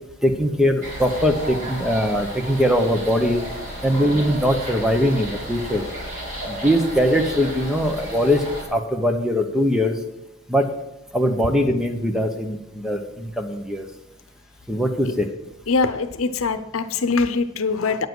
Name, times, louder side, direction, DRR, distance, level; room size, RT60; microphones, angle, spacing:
voice 1, 0.2-3.4 3.8-5.8 6.5-10.0 10.5-10.7 11.1-13.9 14.7-15.3, equal, 5° right, 5 dB, 0.9 m, -21 dB
sound 1, 0.8-8.6, equal, 40° right, 3.0 m, -33 dB
voice 2, 15.7-18.1, left 4 dB, 85° left, 10 dB, 0.7 m, -23 dB
9.4 x 7.5 x 6.1 m, 0.91 s
head